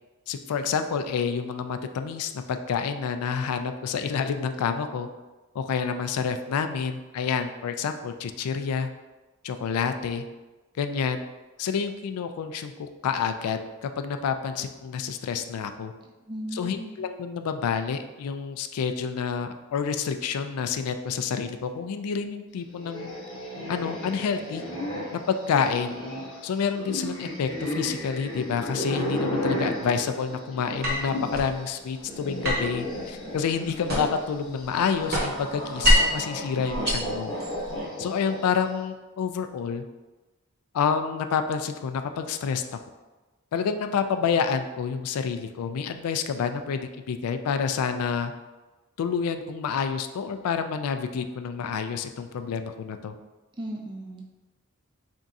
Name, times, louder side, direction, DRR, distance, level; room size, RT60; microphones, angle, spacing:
voice 1, 0.3-5.1 5.5-8.9 9.4-10.2 10.8-11.2 11.6-15.9 16.5-23.1 23.7-24.6 25.1-25.9 26.4-37.3 38.0-39.8 40.7-42.6 43.5-48.3 49.0-53.1, left 6 dB, 90° left, 8 dB, 0.3 m, -28 dB
voice 2, 16.3-17.0 53.6-54.2, right 1 dB, 20° right, 0 dB, 0.4 m, -36 dB
sound 1, 22.7-31.5 31.8-38.6, equal, 20° left, 0.8 m, -34 dB
sound 2, 30.8-31.6 32.4-34.3 34.6-36.2 36.7-37.8, left 1 dB, 45° right, 0.9 m, -25 dB
4.0 x 3.5 x 2.5 m, 1.2 s
head